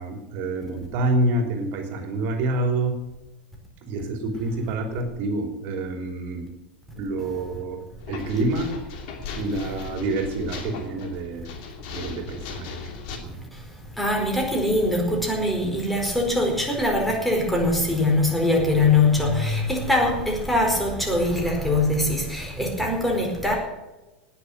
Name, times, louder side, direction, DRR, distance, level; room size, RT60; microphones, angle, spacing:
voice 1, 0.0-2.9 3.8-6.5 6.9-8.8 9.4-11.5 11.9-12.8 13.1-13.4, right 2 dB, 45° right, 4 dB, 3.3 m, -27 dB
sound 1, 8.0-13.2, left 5 dB, 50° left, 2.8 m, -37 dB
voice 2, 14.0-23.6, left 2 dB, ahead, 0 dB, 4.6 m, -22 dB
19.0 x 7.0 x 7.7 m, 1.1 s
figure-of-eight pair, 85°, 5 cm